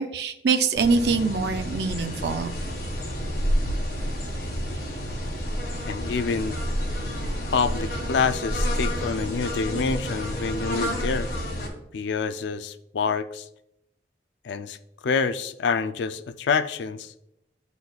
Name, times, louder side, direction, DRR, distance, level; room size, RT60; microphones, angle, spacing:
voice 1, 0.0-2.5, right 4 dB, 70° right, 8 dB, 0.5 m, -24 dB
sound 1, 0.7-11.7, equal, 50° left, 1.8 m, -29 dB
voice 2, 5.8-6.6 7.5-11.3 11.9-13.5 14.4-14.8 15.0-17.1, left 5 dB, 80° left, 12 dB, 0.4 m, -27 dB
12.0 x 4.1 x 2.3 m, 0.80 s
head